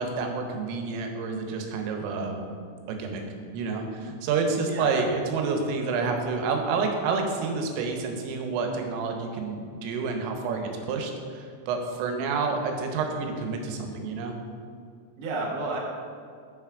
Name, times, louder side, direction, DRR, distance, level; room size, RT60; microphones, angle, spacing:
voice 1, 0.0-2.5 2.9-3.2 3.5-14.4, right 4 dB, 90° right, 3 dB, 3.5 m, -29 dB
voice 2, 4.6-5.1 15.2-15.8, right 2 dB, 70° right, -2 dB, 2.1 m, -31 dB
7.3 x 5.9 x 4.8 m, 2.3 s
omnidirectional pair, 5.7 m